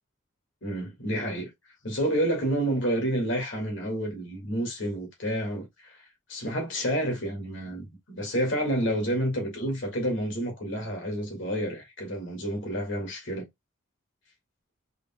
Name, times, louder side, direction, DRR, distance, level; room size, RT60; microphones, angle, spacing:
voice 1, 0.6-1.5 1.8-6.0 6.3-13.5, right 1 dB, 65° left, 2.2 m, -29 dB
4.9 x 3.8 x 2.3 m
head